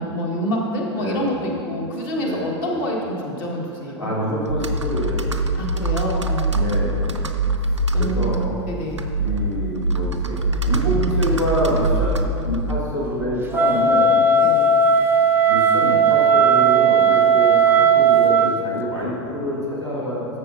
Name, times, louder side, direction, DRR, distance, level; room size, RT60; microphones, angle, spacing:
voice 1, 0.0-4.1 5.5-6.5 7.9-8.4 8.7-9.1 14.4-14.7, equal, 50° left, -1 dB, 1.5 m, -26 dB
voice 2, 0.9-1.3 2.2-2.5 4.0-5.3 6.5-7.2 7.5-8.5 9.2-14.2 15.5-20.4, equal, 85° left, -6 dB, 1.7 m, -26 dB
Computer keyboard, 4.5-13.1, right 2 dB, 90° right, 0.5 m, -23 dB
Wind instrument woodwind instrument, 13.5-18.5, right 4 dB, 15° right, 0.5 m, -16 dB
13.0 x 6.7 x 2.6 m, 2.6 s
figure-of-eight pair, 85°, 15 cm